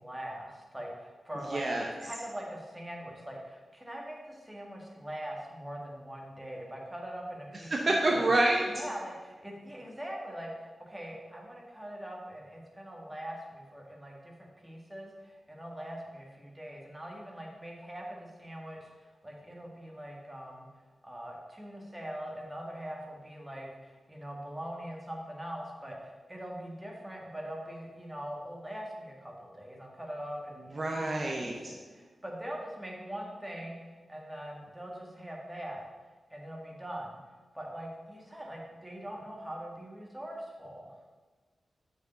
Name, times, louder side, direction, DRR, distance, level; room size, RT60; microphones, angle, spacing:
voice 1, 0.0-1.7 2.0-8.3 8.7-20.7 21.0-33.8 34.1-35.9 36.3-37.2 37.5-41.0, equal, 10° right, -2 dB, 1.7 m, -42 dB
voice 2, 1.5-1.9 7.7-8.7 30.7-31.8, right 2 dB, 40° right, 0 dB, 0.8 m, -27 dB
6.7 x 4.9 x 6.8 m, 1.4 s
wide cardioid pair, 115°, 0 cm